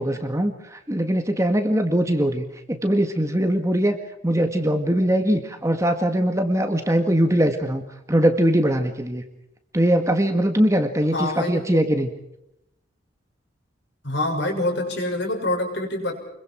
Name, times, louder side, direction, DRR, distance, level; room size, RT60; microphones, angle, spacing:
voice 1, 0.0-4.0 4.2-7.8 8.1-9.2 9.7-12.1, right 1 dB, 15° right, 6 dB, 1.8 m, -21 dB
voice 2, 11.1-11.8 14.0-16.2, left 1 dB, 60° left, 2 dB, 6.2 m, -26 dB
29.5 x 23.0 x 4.6 m, 0.82 s
head